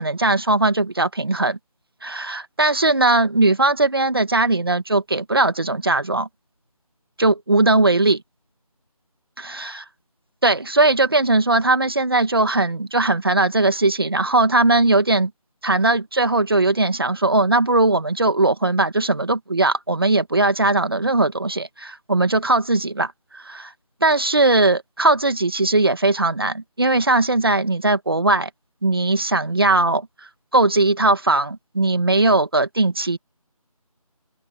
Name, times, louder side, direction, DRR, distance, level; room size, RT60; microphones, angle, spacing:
voice 1, 0.0-1.6 2.0-6.3 7.2-8.2 9.4-9.8 10.4-15.3 15.6-23.7 24.0-28.5 28.8-30.1 30.5-33.2, right 2 dB, 40° right, 1.8 m, -19 dB
open air
figure-of-eight pair, 180°, 19 cm